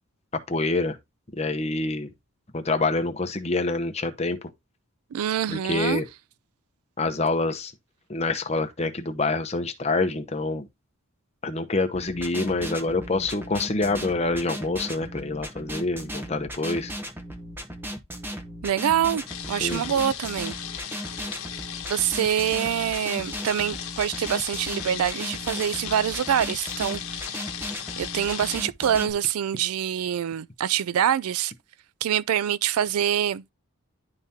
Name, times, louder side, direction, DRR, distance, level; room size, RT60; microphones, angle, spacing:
voice 1, 0.5-1.0 1.3-2.1 2.5-4.5 5.5-6.1 7.0-7.7 8.1-10.7 11.4-16.9 19.6-20.0, left 3 dB, 30° left, 0.7 m, -26 dB
voice 2, 5.1-6.0 18.6-19.2 19.5-20.5 21.9-27.4 28.0-31.5 32.0-33.4, right 9 dB, 80° right, 0.3 m, -25 dB
sound 1, 11.9-29.1, equal, 10° right, 0.7 m, -37 dB
sound 2, 19.3-28.6, left 9 dB, 75° left, 1.1 m, -36 dB
10.5 x 3.6 x 2.8 m
head